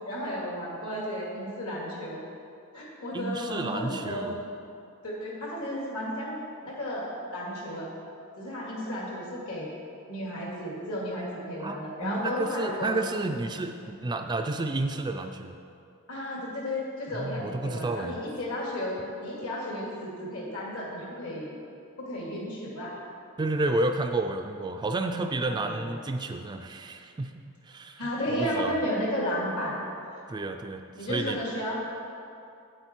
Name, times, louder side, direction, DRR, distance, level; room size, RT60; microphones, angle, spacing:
voice 1, 0.1-2.2 2.7-4.3 5.0-7.9 8.4-9.7 10.1-12.9 16.1-21.5 22.0-22.9 25.5-25.9 28.0-29.8 31.0-31.8, equal, 70° left, -4 dB, 2.4 m, -33 dB
voice 2, 3.1-4.4 11.6-11.8 12.0-15.6 17.1-18.2 23.4-28.0 28.3-28.8 30.3-31.4, right 2 dB, 20° right, 5 dB, 0.3 m, -31 dB
9.3 x 7.9 x 4.5 m, 2.6 s
head